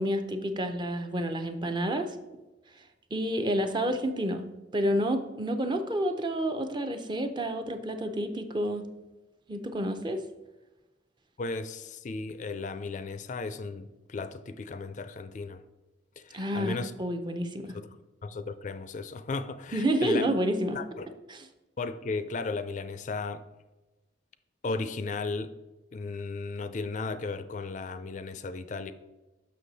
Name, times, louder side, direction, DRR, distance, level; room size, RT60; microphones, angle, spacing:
voice 1, 0.0-2.1 3.1-4.5 4.7-8.9 9.5-10.2 16.3-17.7 19.7-20.8 21.3-21.4, right 1 dB, 25° right, 0.5 m, -29 dB
voice 2, 11.4-15.6 16.2-16.9 17.7-20.3 20.7-21.1 21.8-23.4 24.6-25.5 25.9-28.9, left 3 dB, 45° left, 0.4 m, -35 dB
6.4 x 5.9 x 4.0 m
head